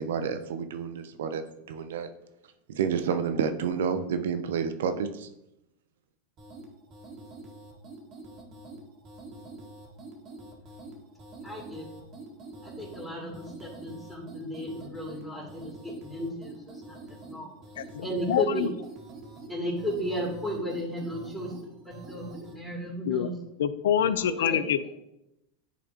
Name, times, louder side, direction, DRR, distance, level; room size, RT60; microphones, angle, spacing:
voice 1, 0.0-2.1 2.7-5.3, right 6 dB, 75° right, 9 dB, 0.7 m, -30 dB
sound 1, 6.4-22.6, right 2 dB, 40° right, 1.8 m, -46 dB
voice 2, 11.4-11.9 12.6-18.7 19.5-23.3 24.3-24.7, equal, 5° left, -6 dB, 2.6 m, -35 dB
voice 3, 17.8-18.7 23.0-23.3 23.6-24.9, left 9 dB, 75° left, 15 dB, 0.4 m, -26 dB
10.5 x 4.2 x 2.9 m, 0.87 s
hypercardioid pair, 100°, 0 cm